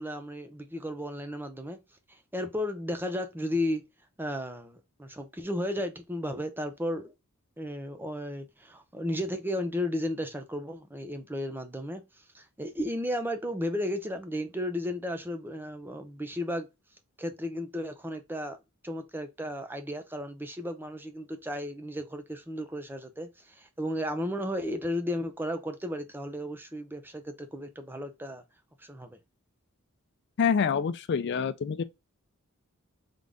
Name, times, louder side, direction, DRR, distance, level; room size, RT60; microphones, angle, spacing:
voice 1, 0.0-1.8 2.1-3.8 4.2-7.1 7.6-12.0 12.3-16.7 17.2-18.6 18.8-28.4 28.8-29.2, left 1 dB, 10° right, 0.7 m, -34 dB
voice 2, 30.4-31.8, left 6 dB, 55° left, 0.4 m, -26 dB
3.8 x 3.7 x 3.4 m
head